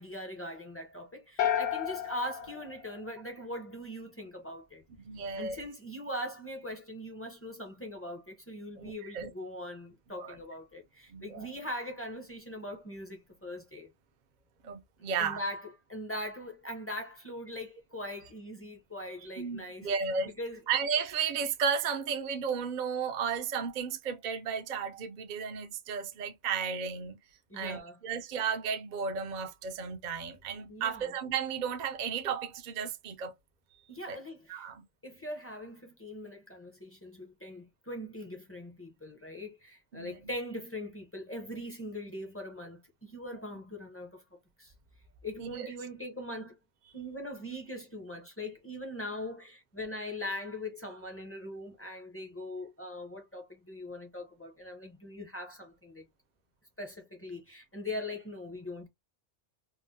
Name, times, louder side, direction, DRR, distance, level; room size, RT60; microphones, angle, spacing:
voice 1, 0.0-4.8 5.4-13.9 15.2-19.9 20.4-20.6 27.5-28.0 30.7-31.1 33.9-34.6 35.0-44.7 45.2-46.5 46.9-56.0 56.8-58.9, left 1 dB, 15° left, 0.6 m, -41 dB
sound 1, 1.4-3.6, left 10 dB, 70° left, 0.9 m, -33 dB
voice 2, 5.0-5.6 8.8-9.3 10.2-10.4 11.1-11.5 14.6-15.4 19.4-20.3 20.7-27.2 27.5-33.3 33.7-33.8 34.1-34.2 34.5-34.8 39.9-40.3 45.4-45.7, right 6 dB, 50° right, 0.6 m, -34 dB
3.7 x 2.1 x 2.6 m
omnidirectional pair, 1.2 m